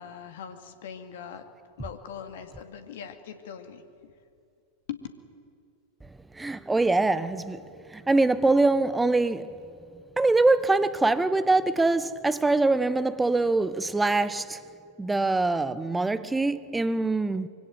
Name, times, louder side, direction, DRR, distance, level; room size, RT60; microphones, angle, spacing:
voice 1, 0.0-1.5 1.8-4.1 4.9-5.0, left 8 dB, 55° left, 2.2 m, -41 dB
voice 2, 6.3-9.5 10.2-14.6 15.0-17.5, right 2 dB, 10° right, 1.2 m, -24 dB
25.5 x 25.0 x 9.3 m
figure-of-eight pair, 90°, 0 cm